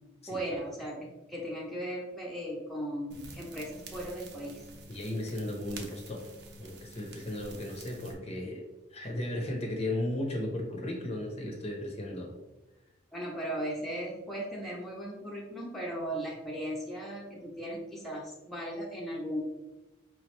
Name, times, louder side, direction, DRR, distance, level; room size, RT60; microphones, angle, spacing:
voice 1, 0.3-4.6 13.1-19.4, right 1 dB, ahead, -4 dB, 0.7 m, -37 dB
sound 1, 3.1-8.1, right 2 dB, 55° right, 0.7 m, -48 dB
voice 2, 4.9-6.3 6.6-8.6 8.9-12.3, left 1 dB, 30° left, 1 dB, 0.7 m, -35 dB
4.9 x 3.1 x 3.1 m, 1.0 s
head